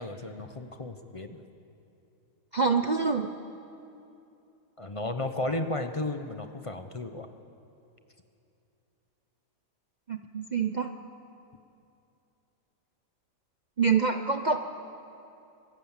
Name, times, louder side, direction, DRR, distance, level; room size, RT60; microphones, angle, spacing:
voice 1, 0.0-1.4 4.8-7.3, left 2 dB, 25° left, 7 dB, 0.7 m, -34 dB
voice 2, 2.5-3.3 10.1-10.9 13.8-14.7, right 5 dB, 55° right, 6 dB, 0.5 m, -26 dB
25.0 x 18.0 x 7.3 m, 2.7 s
omnidirectional pair, 1.7 m